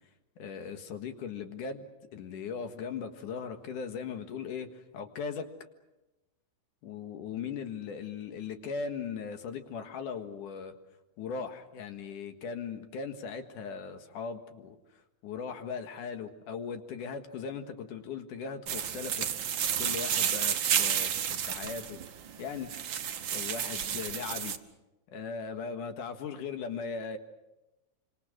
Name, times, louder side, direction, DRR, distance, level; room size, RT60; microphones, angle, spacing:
voice 1, 0.4-1.9 2.1-5.5 6.8-10.7 11.2-22.0 22.4-22.7 23.3-24.6 25.1-27.2, left 6 dB, 75° left, 6 dB, 3.2 m, -39 dB
sound 1, 18.7-24.6, right 9 dB, 65° right, 1.2 m, -31 dB
27.0 x 25.5 x 6.2 m, 0.98 s
omnidirectional pair, 3.7 m